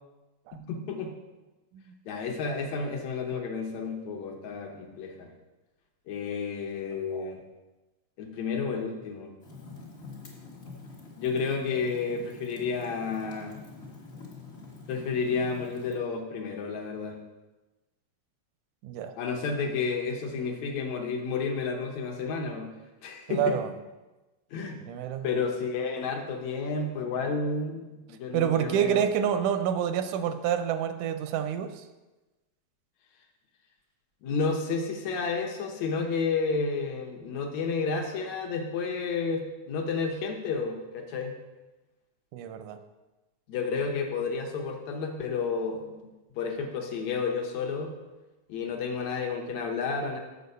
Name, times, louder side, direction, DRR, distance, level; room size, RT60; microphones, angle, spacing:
voice 1, 0.5-1.1 2.1-5.3 6.1-7.4 8.2-9.3 11.2-13.6 14.9-17.2 19.2-22.7 23.0-23.6 24.5-24.8 25.2-29.0 34.2-41.3 43.5-46.0 46.4-47.9 48.5-50.2, left 4 dB, 70° left, 3 dB, 2.0 m, -31 dB
Fire, 9.4-15.9, left 3 dB, 45° left, 0.8 m, -46 dB
voice 2, 18.8-19.1 23.3-23.7 24.9-25.3 28.3-31.8 42.3-42.8, right 9 dB, 90° right, 9 dB, 2.1 m, -28 dB
6.9 x 6.8 x 5.3 m, 1.1 s
omnidirectional pair, 3.5 m